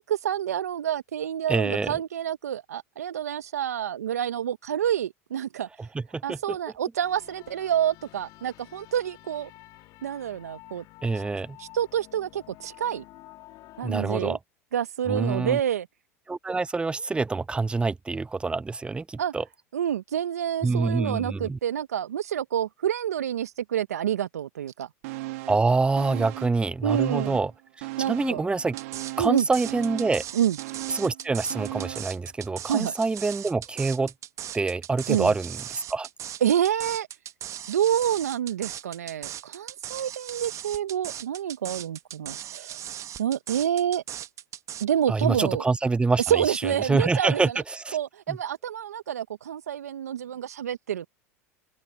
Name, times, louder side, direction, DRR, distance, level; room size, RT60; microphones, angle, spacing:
voice 1, 0.0-5.7 6.2-9.5 10.0-10.8 11.1-11.2 11.6-13.0 13.8-14.4 14.7-15.9 19.2-19.3 19.7-24.9 26.8-27.4 28.0-28.4 29.2-29.4 30.3-30.6 32.7-32.9 35.1-35.3 36.4-37.1 37.7-42.8 43.2-44.0 44.8-45.6 46.2-47.6 47.9-51.1, right 10 dB, 85° right, 0.8 m, -28 dB
voice 2, 1.5-1.9 5.8-6.6 11.0-11.6 13.8-14.4 15.1-15.6 16.3-19.4 20.6-21.6 25.5-27.5 27.8-28.8 29.2-30.2 30.9-34.1 34.5-36.1 45.1-48.0 48.3-48.4, right 3 dB, 10° right, 0.6 m, -26 dB
sound 1, 7.0-13.9, left 19 dB, 55° left, 2.6 m, -50 dB
sound 2, 25.0-25.7 26.0-27.5 27.8-32.2 32.5-32.6, right 21 dB, 65° right, 0.5 m, -37 dB
sound 3, 28.8-44.8, right 10 dB, 40° right, 1.1 m, -38 dB
open air
hypercardioid pair, 85°, 8 cm